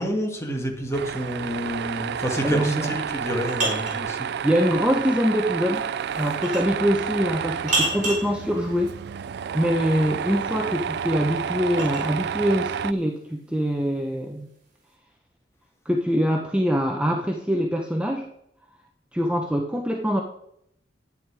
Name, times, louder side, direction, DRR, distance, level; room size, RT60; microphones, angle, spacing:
voice 1, 0.0-4.3, equal, 15° left, 1 dB, 2.2 m, -29 dB
Tools, 0.9-12.9, right 7 dB, 65° right, 0.4 m, -30 dB
voice 2, 2.4-2.9 4.4-5.9 6.1-8.9 9.5-14.5 15.8-18.3 19.1-20.2, equal, 5° right, 1 dB, 0.9 m, -24 dB
sound 1, 3.1-4.0 6.4-6.8 7.7-8.3 10.6-12.1, right 2 dB, 45° right, 4.7 m, -28 dB
12.0 x 9.4 x 4.8 m, 0.75 s
head